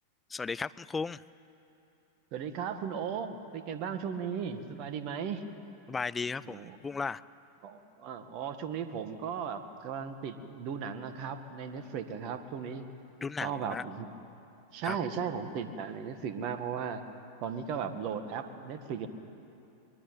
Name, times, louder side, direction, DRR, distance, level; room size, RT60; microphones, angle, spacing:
voice 1, 0.3-1.2 5.9-7.2 13.2-13.8 14.8-15.0, left 4 dB, 15° left, 17 dB, 0.5 m, -35 dB
voice 2, 2.3-5.4 6.4-6.8 7.6-12.8 13.4-14.1 14.7-17.0 17.4-19.1, right 7 dB, 45° right, 9 dB, 1.9 m, -36 dB
22.0 x 22.0 x 8.9 m, 2.8 s
figure-of-eight pair, 95°, 0 cm